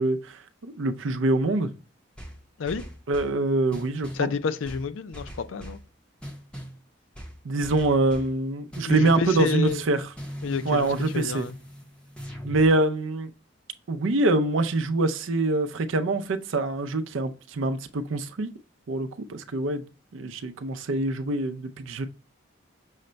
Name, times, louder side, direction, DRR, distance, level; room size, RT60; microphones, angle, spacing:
voice 1, 0.0-1.7 3.1-4.3 7.4-10.0 10.7-11.4 12.4-13.3 13.9-18.5 18.9-19.9 20.1-22.1, right 2 dB, 85° right, 0.5 m, -25 dB
sound 1, 2.2-3.4 3.7-4.3 4.6-5.9 6.2-6.8 7.1-8.3 8.7-12.7, equal, 5° left, 0.8 m, -40 dB
voice 2, 4.1-5.8 8.8-10.0 10.4-11.5, left 5 dB, 85° left, 0.4 m, -30 dB
6.3 x 2.2 x 3.9 m
head